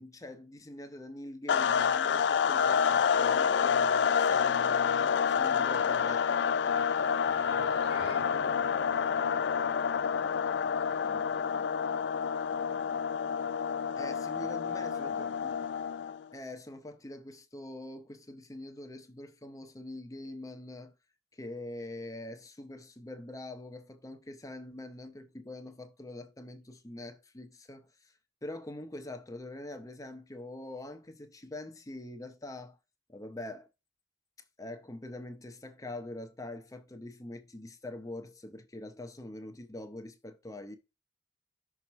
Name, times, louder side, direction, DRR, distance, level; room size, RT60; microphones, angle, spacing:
voice 1, 0.0-6.4 14.0-15.5 16.3-20.9 21.3-28.1 28.4-32.8 33.1-33.7 34.6-40.8, left 1 dB, 20° left, 0.7 m, -44 dB
sound 1, 1.5-16.2, left 7 dB, 65° left, 0.3 m, -28 dB
voice 2, 5.7-12.3 12.7-13.3 13.9-14.0 14.3-15.7, right 2 dB, 85° right, 3.9 m, -53 dB
sound 2, 7.2-11.8, right 2 dB, 60° right, 2.2 m, -51 dB
6.1 x 4.2 x 4.1 m
head